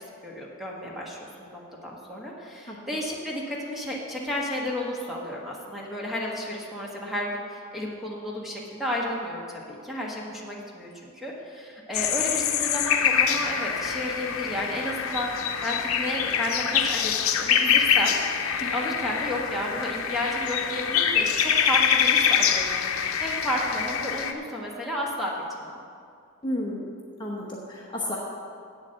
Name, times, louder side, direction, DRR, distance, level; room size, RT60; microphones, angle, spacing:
voice 1, 0.2-18.2 18.7-25.8, left 1 dB, ahead, -3 dB, 1.5 m, -32 dB
sound 1, 11.9-24.3, left 8 dB, 75° left, 0.7 m, -25 dB
voice 2, 26.4-26.9 27.2-28.2, left 1 dB, 20° left, -4 dB, 1.0 m, -32 dB
8.2 x 7.4 x 7.7 m, 2.4 s
head